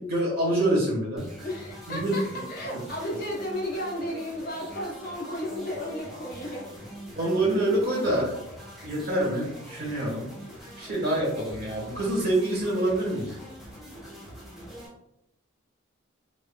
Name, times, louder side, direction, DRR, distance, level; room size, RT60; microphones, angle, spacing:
voice 1, 0.0-1.2 1.9-2.2 7.2-8.3 8.8-10.3 10.8-13.3, right 1 dB, 55° right, -3 dB, 1.3 m, -26 dB
sound 1, 1.2-14.9, equal, ahead, 0.9 m, -44 dB
voice 2, 1.4-6.7, equal, 50° left, -2 dB, 0.7 m, -33 dB
3.5 x 2.2 x 2.2 m, 0.83 s
head